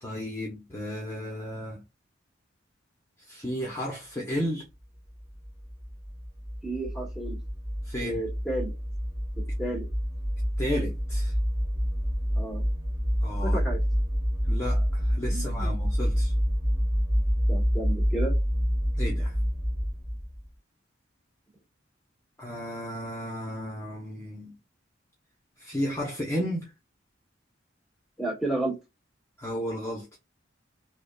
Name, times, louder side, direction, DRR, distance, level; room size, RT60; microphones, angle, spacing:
voice 1, 0.0-1.8 3.3-4.7 7.9-8.2 10.6-11.3 13.2-13.6 14.5-16.3 19.0-19.4 22.4-24.5 25.6-26.7 29.4-30.1, equal, 15° left, 0.9 m, -33 dB
sound 1, 5.1-20.5, equal, 20° right, 0.9 m, -27 dB
voice 2, 6.6-7.4 8.0-8.7 9.6-9.9 12.3-12.7 13.4-13.8 15.3-15.7 17.5-18.4 28.2-28.8, right 2 dB, ahead, 1.8 m, -32 dB
5.8 x 2.2 x 2.4 m
head